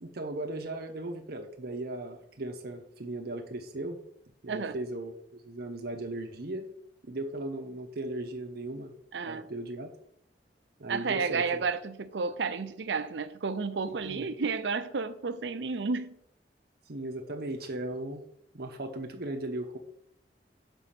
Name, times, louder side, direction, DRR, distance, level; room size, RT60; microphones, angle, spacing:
voice 1, 0.0-4.0 4.4-6.7 7.0-8.9 9.2-9.9 10.8-11.6 13.9-14.2 16.9-18.2 18.5-19.8, right 1 dB, 60° right, 0.9 m, -37 dB
voice 2, 9.1-9.5 10.9-16.2, right 4 dB, 85° right, 0.6 m, -31 dB
7.0 x 5.3 x 5.8 m
head